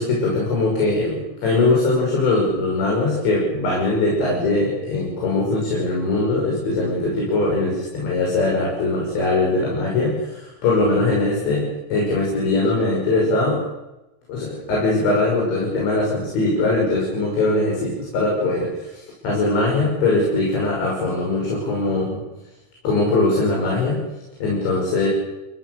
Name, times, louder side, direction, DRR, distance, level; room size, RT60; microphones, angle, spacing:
voice 1, 0.0-13.6 14.3-22.2 22.8-24.0 24.4-25.1, left 2 dB, 85° left, -2 dB, 8.3 m, -21 dB
30.0 x 17.0 x 6.9 m, 0.98 s
omnidirectional pair, 5.0 m